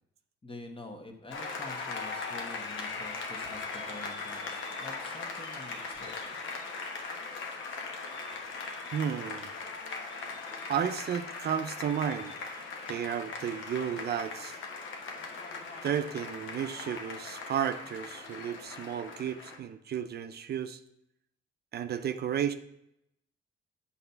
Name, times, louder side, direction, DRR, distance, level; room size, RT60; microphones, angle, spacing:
voice 1, 0.4-6.4, left 2 dB, 25° left, 4 dB, 1.3 m, -47 dB
Applause, 1.3-19.6, left 4 dB, 75° left, 1.2 m, -39 dB
voice 2, 8.9-9.5 10.7-12.4 12.9-14.6 15.8-20.8 21.7-22.5, right 8 dB, 55° right, 10 dB, 0.5 m, -33 dB
7.9 x 4.2 x 5.6 m, 0.78 s
cardioid pair, 90°, 20 cm